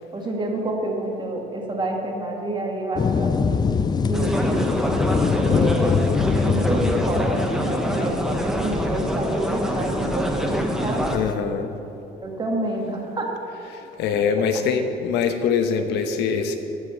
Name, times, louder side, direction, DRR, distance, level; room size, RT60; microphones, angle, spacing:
voice 1, 0.1-3.6 4.1-4.6 5.4-6.0 6.3-11.1 12.2-13.3 14.1-14.3, right 2 dB, 25° right, 1 dB, 1.8 m, -28 dB
sound 1, 2.9-11.3, left 5 dB, 25° left, 0.4 m, -24 dB
sound 2, 4.1-11.2, equal, 5° right, 0.9 m, -25 dB
voice 2, 11.1-11.7 13.7-16.6, left 6 dB, 85° left, 7 dB, 1.0 m, -23 dB
14.0 x 4.9 x 6.6 m, 2.9 s
cardioid pair, 110°, 17 cm